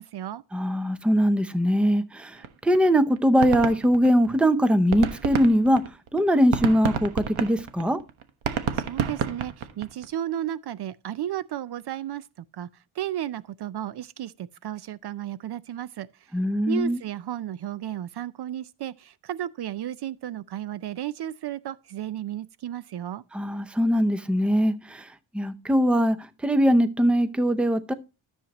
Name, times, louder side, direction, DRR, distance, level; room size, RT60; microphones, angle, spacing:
voice 1, 0.0-0.4 8.5-16.4 16.7-23.2, right 11 dB, 55° right, 0.5 m, -34 dB
voice 2, 0.5-5.8 6.1-8.0 16.3-17.0 23.3-25.1 25.3-27.9, equal, ahead, 0.6 m, -22 dB
sound 1, 2.4-2.5 2.7-2.9 3.2-4.5 4.8-10.0, right 8 dB, 80° right, 1.3 m, -29 dB
13.0 x 7.3 x 2.9 m
wide cardioid pair, 145°, 47 cm